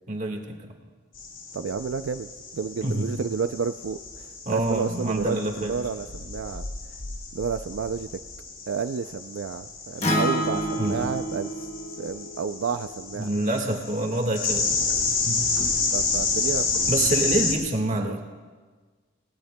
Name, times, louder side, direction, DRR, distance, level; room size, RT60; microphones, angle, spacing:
voice 1, 0.1-0.6 2.8-3.1 4.4-5.7 10.8-11.0 13.2-14.7 15.2-15.5 16.9-18.2, right 2 dB, 40° right, 2 dB, 1.6 m, -26 dB
sound 1, 1.1-17.5, left 4 dB, 90° left, 2.3 m, -30 dB
voice 2, 1.5-6.7 7.3-8.1 8.7-11.5 12.0-13.3 15.9-17.3 18.1-18.2, right 6 dB, 80° right, 10 dB, 0.4 m, -31 dB
Acoustic guitar, 10.0-14.2, equal, 35° left, 1.4 m, -30 dB
26.5 x 18.5 x 2.2 m, 1.5 s
head